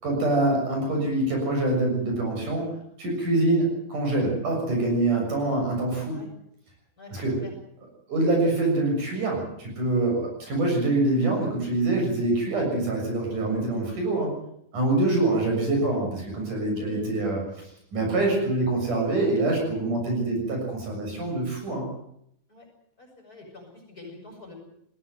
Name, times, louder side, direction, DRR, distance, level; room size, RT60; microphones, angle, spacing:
voice 1, 0.0-2.7 3.0-6.2 7.1-7.4 8.1-14.3 14.7-17.4 17.9-21.9, right 2 dB, 60° right, 1 dB, 8.5 m, -25 dB
voice 2, 16.7-17.1 22.5-22.7 23.0-24.5, left 2 dB, 25° left, 0 dB, 7.9 m, -46 dB
20.5 x 18.0 x 9.4 m, 0.75 s
omnidirectional pair, 4.1 m